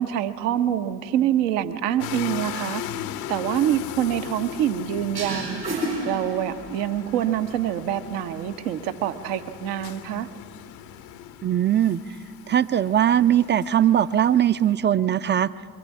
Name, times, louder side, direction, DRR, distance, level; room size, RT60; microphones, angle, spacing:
voice 1, 0.0-2.8 3.3-10.3, right 11 dB, 70° right, 10 dB, 1.0 m, -26 dB
sound 1, 2.0-14.7, left 11 dB, 65° left, 0.9 m, -38 dB
sound 2, 5.1-6.9, right 1 dB, 90° right, 4.2 m, -30 dB
voice 2, 11.4-12.0 12.5-15.5, right 10 dB, 25° right, 17 dB, 0.5 m, -20 dB
23.0 x 14.0 x 8.7 m, 2.3 s
figure-of-eight pair, 40°, 49 cm